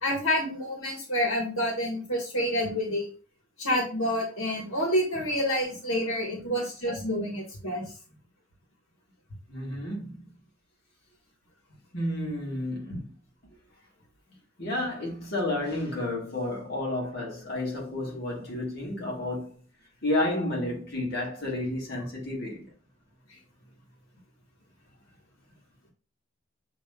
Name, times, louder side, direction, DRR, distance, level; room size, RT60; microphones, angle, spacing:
voice 1, 0.0-3.1 3.6-7.8 12.9-13.0, equal, 70° left, 1.6 m, -28 dB
voice 2, 9.5-10.2 11.9-13.1 14.6-19.5 20.0-22.6, left 1 dB, 50° left, 1.6 m, -31 dB
7.2 x 3.0 x 2.3 m
head